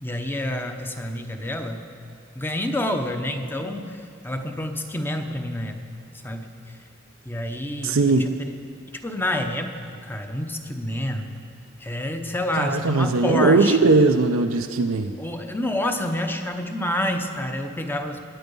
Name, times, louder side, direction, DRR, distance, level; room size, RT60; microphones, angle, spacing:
voice 1, 0.0-1.9 2.3-5.8 6.2-6.8 7.2-8.5 8.9-11.3 11.8-13.8 15.2-18.2, left 1 dB, 10° left, 5 dB, 0.8 m, -28 dB
voice 2, 7.8-8.3 12.5-15.1, right 3 dB, 90° right, 5 dB, 0.6 m, -19 dB
20.5 x 9.2 x 5.4 m, 2.5 s
head